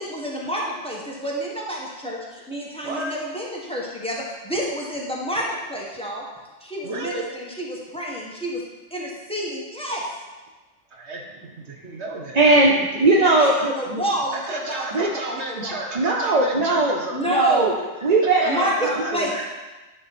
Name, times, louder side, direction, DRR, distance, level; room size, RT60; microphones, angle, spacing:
voice 1, 0.0-6.2 6.6-8.6 8.9-10.0 13.2-15.8 17.1-17.8 18.5-19.3, equal, 5° left, -3 dB, 1.4 m, -29 dB
voice 2, 2.8-3.2 6.8-7.2 10.9-11.2 11.6-12.4 14.3-17.2 18.4-19.5, right 2 dB, 60° right, 0 dB, 1.3 m, -32 dB
voice 3, 12.3-14.0 14.9-15.1 15.9-16.9 17.3-17.7 18.0-19.3, right 2 dB, 40° right, -1 dB, 0.7 m, -19 dB
10.0 x 5.5 x 4.3 m, 1.2 s
omnidirectional pair, 1.3 m